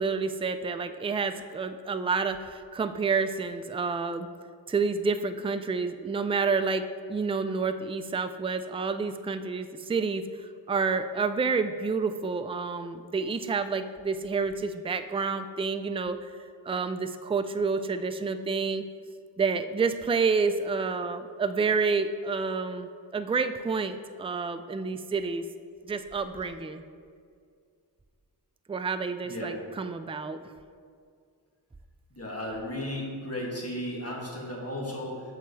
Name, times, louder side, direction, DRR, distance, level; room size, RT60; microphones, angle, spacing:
voice 1, 0.0-4.3 4.7-10.2 10.7-16.3 16.6-18.8 19.4-25.4 25.9-26.8 28.7-30.4, right 4 dB, 15° right, 10 dB, 0.3 m, -29 dB
voice 2, 32.1-35.2, left 1 dB, 30° left, -3 dB, 1.9 m, -35 dB
13.5 x 4.6 x 3.2 m, 2.2 s
wide cardioid pair, 55°, 46 cm